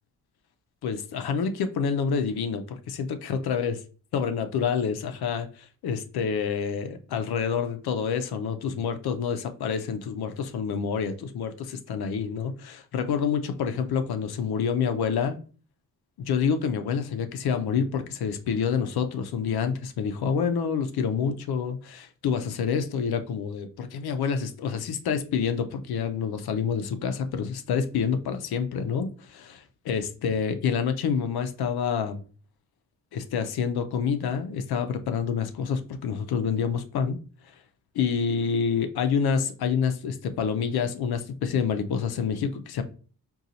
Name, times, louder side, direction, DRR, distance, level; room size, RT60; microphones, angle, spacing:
voice 1, 0.8-3.7 4.1-15.4 16.2-32.2 33.1-37.2 37.9-42.8, left 6 dB, 80° left, 8 dB, 0.5 m, -28 dB
3.8 x 2.3 x 2.7 m, 0.38 s
wide cardioid pair, 125°, 38 cm